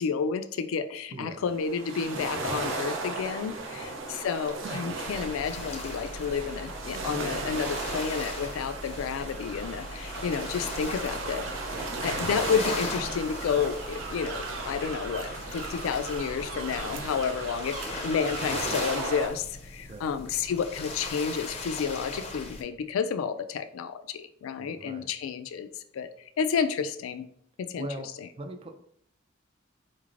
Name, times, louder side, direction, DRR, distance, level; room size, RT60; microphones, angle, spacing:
voice 1, 0.0-11.5 12.0-25.7 25.9-26.1 26.4-27.3 27.6-27.9 28.2-28.3, left 6 dB, 90° left, 11 dB, 0.3 m, -31 dB
voice 2, 1.1-1.4 3.5-3.8 11.7-12.0 19.9-20.1 24.6-25.1 27.8-28.8, right 1 dB, 30° right, 7 dB, 0.3 m, -41 dB
sound 1, 1.4-19.3, right 3 dB, 70° right, 0.6 m, -36 dB
sound 2, 5.0-22.6, left 2 dB, 30° left, 0.5 m, -39 dB
3.9 x 3.1 x 2.5 m, 0.67 s
head